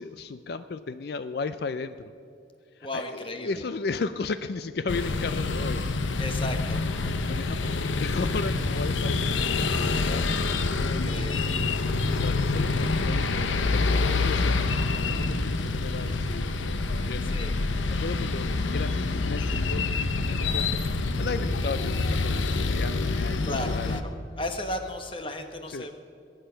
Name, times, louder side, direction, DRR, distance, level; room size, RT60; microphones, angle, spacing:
voice 1, 0.0-2.1 2.8-5.8 6.3-6.4 7.2-11.5 12.2-16.5 17.0-17.3 17.8-20.8 21.2-24.0 25.7-25.9, left 4 dB, 55° left, 12 dB, 0.4 m, -35 dB
voice 2, 2.8-3.6 6.2-6.9 10.8-11.6 17.2-17.6 23.4-26.1, left 1 dB, 25° left, 6 dB, 1.1 m, -35 dB
sound 1, 4.9-24.0, left 3 dB, 80° left, 0.8 m, -27 dB
22.0 x 8.9 x 5.7 m, 2.6 s
head